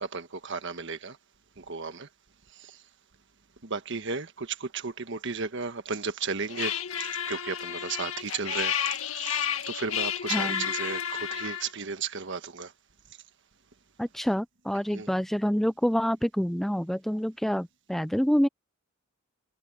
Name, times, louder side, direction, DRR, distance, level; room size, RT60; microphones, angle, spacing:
voice 1, 0.0-1.2 1.6-2.1 3.6-6.8 7.3-12.7 14.9-15.1, right 4 dB, 60° right, 1.4 m, -34 dB
sound 1, 6.5-11.7, left 8 dB, 80° left, 1.9 m, -31 dB
voice 2, 10.3-10.7 14.0-18.5, equal, ahead, 0.4 m, -27 dB
head